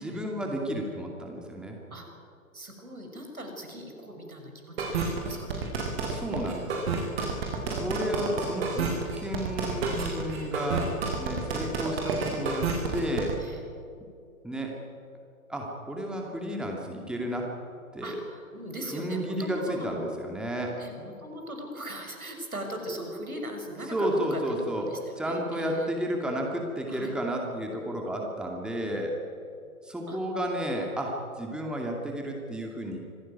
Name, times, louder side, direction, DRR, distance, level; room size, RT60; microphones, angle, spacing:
voice 1, 0.0-1.8 6.1-6.8 7.7-13.3 14.4-14.7 15.5-17.5 17.9-18.2 18.9-20.8 23.9-24.9 25.2-29.1 29.8-33.0, equal, ahead, 0 dB, 2.4 m, -32 dB
voice 2, 2.5-6.1 7.4-8.0 13.4-13.6 18.0-20.0 20.8-25.9 26.9-27.1 28.1-28.3 30.1-30.2, equal, 80° right, 4 dB, 6.5 m, -39 dB
sound 1, 4.8-13.3, right 4 dB, 45° right, 6.7 m, -30 dB
26.0 x 17.0 x 9.6 m, 2.5 s
figure-of-eight pair, 125°, 43 cm